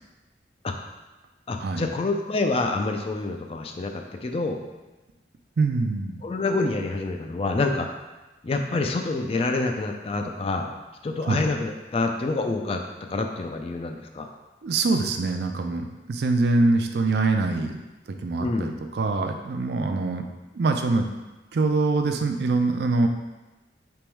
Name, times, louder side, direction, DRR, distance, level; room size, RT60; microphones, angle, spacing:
voice 1, 1.5-4.6 6.2-7.9 8.4-10.7 11.0-12.8 13.1-14.3 18.4-18.7, left 3 dB, 30° left, 4 dB, 0.3 m, -27 dB
voice 2, 5.6-6.2 11.3-11.4 14.6-17.8 18.1-20.2 20.5-21.1 21.5-23.1, right 3 dB, 60° right, 5 dB, 0.4 m, -24 dB
3.5 x 3.0 x 4.5 m, 1.1 s
head